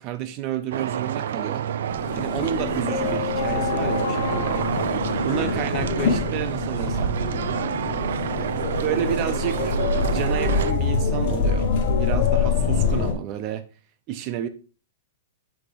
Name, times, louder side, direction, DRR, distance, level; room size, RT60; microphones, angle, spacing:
voice 1, 0.0-1.7 2.1-4.6 5.2-7.2 8.8-11.7 12.0-13.7 14.1-14.5, right 10 dB, 40° right, 0.8 m, -30 dB
sound 1, 0.7-10.7, right 9 dB, 75° right, 0.4 m, -28 dB
sound 2, 1.9-13.1, left 5 dB, 60° left, 1.4 m, -25 dB
6.1 x 5.0 x 3.4 m
hypercardioid pair, 150°, 0 cm